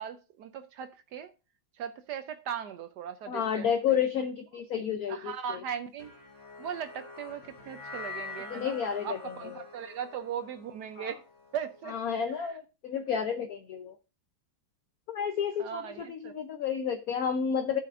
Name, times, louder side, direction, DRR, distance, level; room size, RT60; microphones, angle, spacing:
voice 1, 0.0-1.3 1.7-4.0 5.1-6.1 6.6-11.2 11.5-12.0 12.3-12.6 15.6-16.3, right 8 dB, 70° right, 1.0 m, -38 dB
voice 2, 3.3-5.3 8.5-9.2 9.4-9.6 11.0-11.1 11.9-13.9 15.1-17.8, left 7 dB, 65° left, 0.9 m, -31 dB
sound 1, 6.0-12.4, left 4 dB, 90° left, 3.3 m, -46 dB
16.5 x 5.9 x 2.5 m
omnidirectional pair, 2.2 m